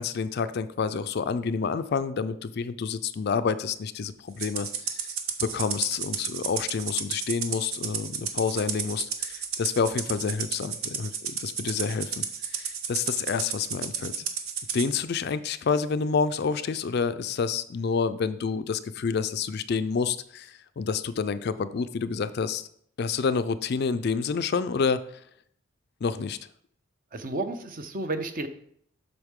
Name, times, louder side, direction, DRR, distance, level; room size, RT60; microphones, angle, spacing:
voice 1, 0.0-5.1 5.4-14.3 14.7-22.7 23.0-25.2 26.0-26.4, left 5 dB, 50° left, 12 dB, 0.4 m, -28 dB
Rattle (instrument), 4.4-14.9, right 7 dB, 90° right, 0.9 m, -32 dB
voice 2, 27.1-28.5, right 2 dB, 40° right, 8 dB, 0.7 m, -32 dB
8.0 x 6.2 x 3.6 m, 0.65 s
head